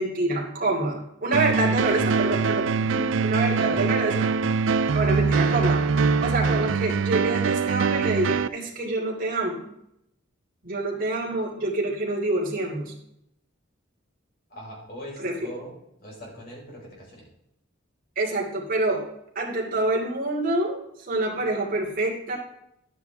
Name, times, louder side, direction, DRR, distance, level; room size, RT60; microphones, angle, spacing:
voice 1, 0.0-4.3 4.9-5.8 6.2-9.6 10.6-12.9 15.2-15.4 18.2-19.0 19.3-22.4, right 2 dB, 40° right, -2 dB, 2.7 m, -27 dB
sound 1, 1.3-8.5, right 5 dB, 65° right, 0.4 m, -23 dB
voice 2, 14.5-15.7 16.0-17.2, equal, 45° left, -3 dB, 4.8 m, -40 dB
11.0 x 9.2 x 3.5 m, 0.77 s
head